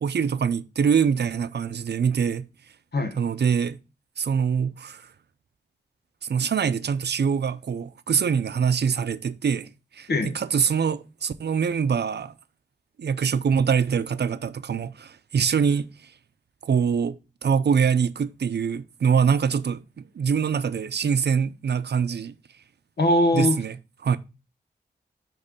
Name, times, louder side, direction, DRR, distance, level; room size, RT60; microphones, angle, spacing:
voice 1, 0.0-2.5 3.2-3.8 4.2-5.0 6.2-9.7 10.0-10.1 10.3-12.3 13.0-15.9 16.6-19.8 20.2-22.3 23.3-23.8 24.0-24.2, right 6 dB, 75° right, 0.6 m, -24 dB
voice 2, 23.0-23.6, left 1 dB, 70° left, 1.3 m, -21 dB
9.7 x 3.2 x 5.1 m
wide cardioid pair, 80°, 18 cm